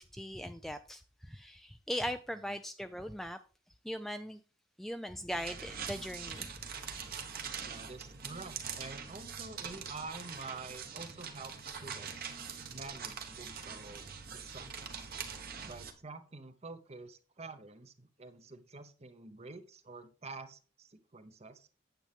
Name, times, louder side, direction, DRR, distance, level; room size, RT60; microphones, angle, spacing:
voice 1, 0.0-3.4 3.8-4.4 4.8-6.5, equal, ahead, 0.3 m, -39 dB
sound 1, 5.3-15.9, right 6 dB, 50° right, 1.3 m, -43 dB
voice 2, 7.6-12.3 12.7-15.1 15.6-21.7, right 3 dB, 30° right, 0.8 m, -48 dB
9.1 x 8.0 x 3.5 m
head